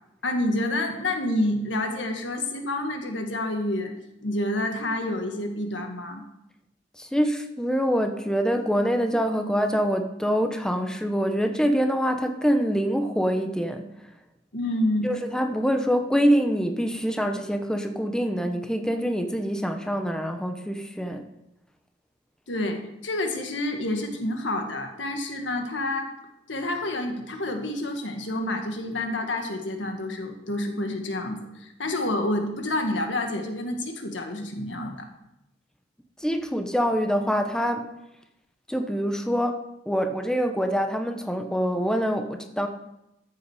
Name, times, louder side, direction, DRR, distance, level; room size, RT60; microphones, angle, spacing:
voice 1, 0.2-3.9 4.2-6.2 14.5-15.1 22.5-26.1 26.5-35.1, left 1 dB, 85° left, 4 dB, 1.8 m, -28 dB
voice 2, 7.0-13.9 15.0-21.2 36.2-37.9 38.7-42.7, equal, 5° left, 5 dB, 0.8 m, -25 dB
13.5 x 7.8 x 4.9 m, 0.86 s
head